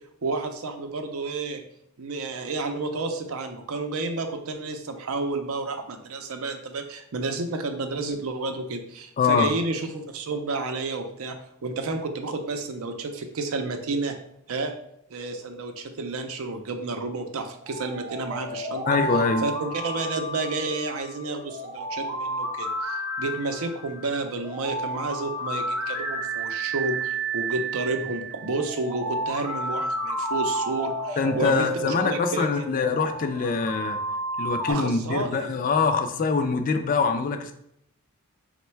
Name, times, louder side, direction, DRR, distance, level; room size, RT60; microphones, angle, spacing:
voice 1, 0.2-1.6 2.0-11.4 11.6-14.2 14.5-14.7 15.1-18.9 19.4-32.6 34.7-35.6, right 3 dB, 70° right, 6 dB, 0.5 m, -31 dB
voice 2, 9.2-9.5 18.9-19.5 31.2-34.0 34.4-37.5, left 4 dB, 35° left, 7 dB, 0.3 m, -24 dB
sound 1, 17.6-34.7, right 1 dB, 5° right, 0.6 m, -31 dB
4.1 x 2.2 x 4.4 m, 0.75 s
head